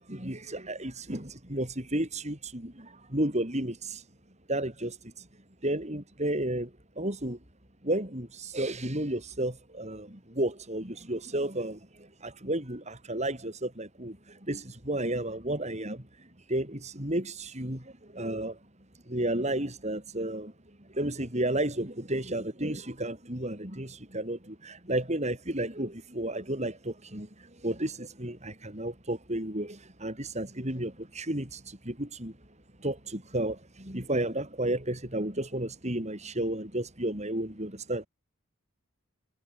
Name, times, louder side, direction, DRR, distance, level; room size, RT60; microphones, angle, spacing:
voice 1, 0.1-4.0 4.5-5.0 5.6-7.4 7.8-16.0 16.5-18.6 19.1-20.5 20.9-32.3 32.8-38.1, right 1 dB, 35° right, 6.8 m, -32 dB
head